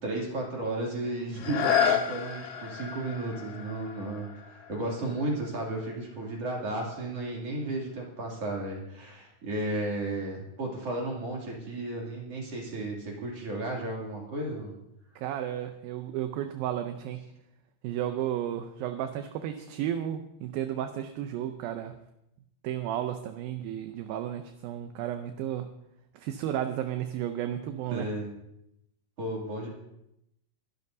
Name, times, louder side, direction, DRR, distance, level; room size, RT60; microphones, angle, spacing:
voice 1, 0.0-4.3 4.7-14.7 27.9-28.3 29.2-29.7, right 2 dB, 40° right, -2 dB, 3.3 m, -33 dB
sound 1, 1.3-7.0 7.6-7.7, left 8 dB, 80° left, 3.3 m, -32 dB
voice 2, 15.2-17.2 17.8-22.0 22.6-25.7 26.1-28.1, right 11 dB, 75° right, 7 dB, 2.3 m, -33 dB
24.0 x 12.0 x 2.7 m, 0.82 s
omnidirectional pair, 4.7 m